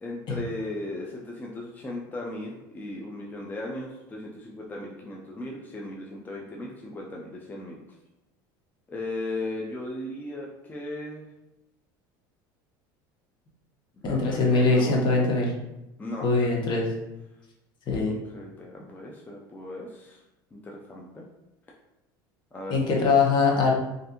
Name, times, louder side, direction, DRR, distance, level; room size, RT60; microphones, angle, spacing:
voice 1, 0.0-7.8 8.9-11.3 13.9-15.3 16.0-16.4 18.1-20.2 20.5-21.2 22.5-22.8, left 1 dB, 15° left, -2 dB, 0.5 m, -37 dB
voice 2, 14.0-15.5 16.2-16.9 17.9-18.1 22.7-23.7, left 3 dB, 45° left, -1 dB, 0.9 m, -22 dB
3.2 x 2.5 x 2.9 m, 0.93 s
supercardioid pair, 95°, 11 cm